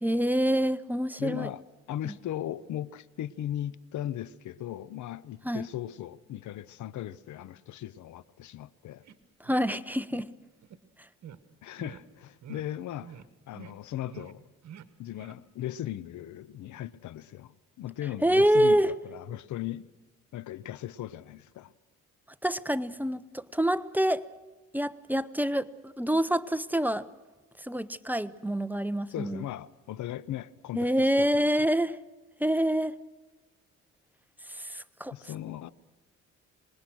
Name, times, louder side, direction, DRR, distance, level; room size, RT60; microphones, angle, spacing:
voice 1, 0.0-1.5 2.0-2.1 5.4-5.6 9.4-10.3 18.2-18.9 22.4-24.3 24.7-27.1 27.6-29.4 30.7-32.0 32.4-33.0 34.5-35.1, equal, 5° right, 0.8 m, -26 dB
voice 2, 1.2-1.6 1.9-9.0 11.6-13.2 13.5-14.4 15.0-19.9 20.3-21.7 29.1-31.5 35.1-35.7, left 12 dB, 75° left, 0.9 m, -38 dB
sound 1, 9.0-9.2 9.4-9.7 10.1-10.3 10.6-10.8 11.2-11.4 11.8-12.0 12.4-12.6 13.0-13.3 13.5-13.7 14.1-14.3 14.6-14.9 15.1-15.3, right 8 dB, 65° right, 1.6 m, -47 dB
26.5 x 20.5 x 6.3 m
cardioid pair, 90°, 30 cm